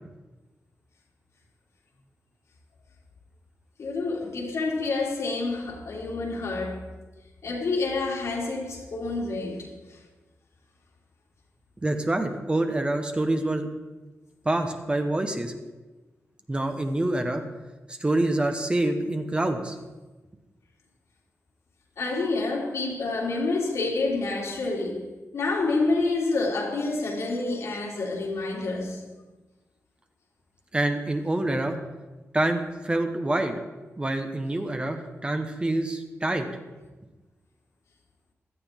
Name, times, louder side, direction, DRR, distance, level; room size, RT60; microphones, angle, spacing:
voice 1, 3.8-6.9 7.4-10.0 22.0-29.0, left 3 dB, 80° left, 2.9 m, -28 dB
voice 2, 11.8-13.7 14.4-15.5 16.5-17.4 17.9-19.8 30.7-31.8 32.3-33.6 34.0-36.5, right 1 dB, 20° right, 1.2 m, -26 dB
16.5 x 12.0 x 3.7 m
wide cardioid pair, 110°, 5 cm